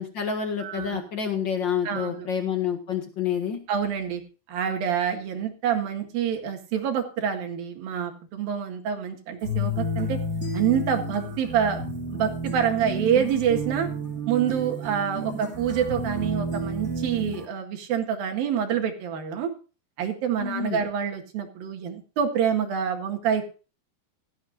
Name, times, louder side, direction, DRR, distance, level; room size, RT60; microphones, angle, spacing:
voice 1, 0.0-3.6 20.4-20.8, left 7 dB, 65° left, 5 dB, 1.1 m, -28 dB
voice 2, 0.6-1.1 1.8-2.3 3.7-4.2 4.5-10.2 10.5-13.9 14.3-19.5 20.0-23.4, right 8 dB, 65° right, 5 dB, 3.4 m, -27 dB
sound 1, 9.4-17.4, equal, 15° right, 6.6 m, -31 dB
17.5 x 13.0 x 2.5 m, 0.34 s
omnidirectional pair, 4.7 m